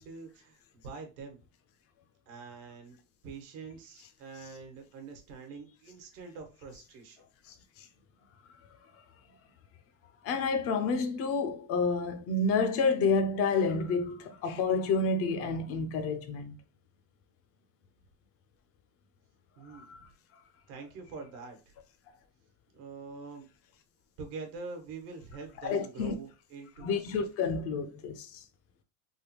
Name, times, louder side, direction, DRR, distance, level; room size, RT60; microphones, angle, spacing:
voice 1, 0.0-1.4 2.3-3.0 3.2-7.2 19.6-20.0 20.7-21.7 22.7-23.5 24.2-26.9, right 4 dB, 80° right, 1.2 m, -45 dB
voice 2, 10.2-16.6 19.7-20.0 25.6-26.2 26.8-28.4, left 4 dB, 35° left, 0.4 m, -29 dB
3.5 x 2.2 x 2.9 m
cardioid pair, 155°, 43 cm